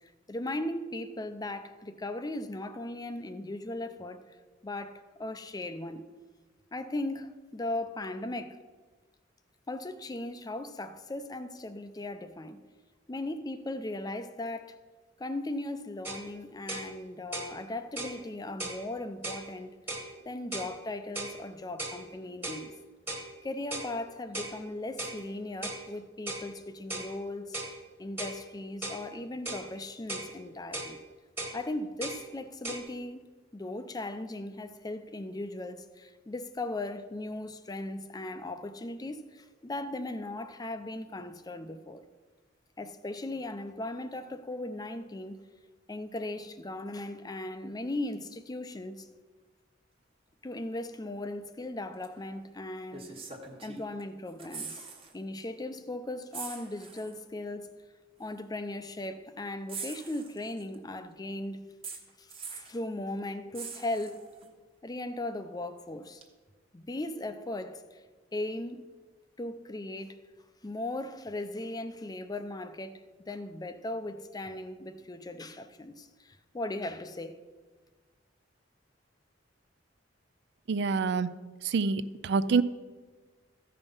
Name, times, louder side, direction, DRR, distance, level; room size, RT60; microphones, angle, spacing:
voice 1, 0.0-4.2 4.6-6.1 6.7-8.6 9.7-12.6 13.1-14.7 15.2-19.8 20.2-22.7 23.4-27.6 28.0-31.0 31.5-42.0 42.8-45.5 45.9-49.1 50.4-53.2 53.6-54.8 55.1-57.7 58.2-61.7 62.2-64.3 64.8-66.2 66.7-68.0 68.3-68.8 69.4-70.2 70.6-77.4, left 2 dB, 20° left, 0.5 m, -38 dB
sound 1, 16.0-16.3 16.7-16.9 17.3-17.5 18.0-18.2 18.6-18.8 19.2-19.4 19.9-20.1 20.5-20.7 21.1-21.4 21.8-22.0 22.4-22.6 23.1-23.3 23.7-23.9 24.3-24.6 25.0-25.2 25.6-25.8 26.3-26.5 26.9-27.1 27.5-27.7 28.2-28.4 28.8-29.0 29.4-29.7 30.1-30.3 30.7-30.9 31.4-31.6 32.0-32.2 32.6-32.8, right 2 dB, 10° right, 1.3 m, -37 dB
sound 2, 52.0-52.2 52.9-54.0 54.3-55.1 55.4-55.6 56.3-57.2 58.2-58.3 59.7-60.8 61.8-62.8 63.5-64.5 66.2-66.3, right 5 dB, 30° right, 1.2 m, -43 dB
voice 2, 80.7-81.3 81.6-82.6, right 4 dB, 65° right, 0.4 m, -26 dB
14.0 x 5.4 x 5.4 m
head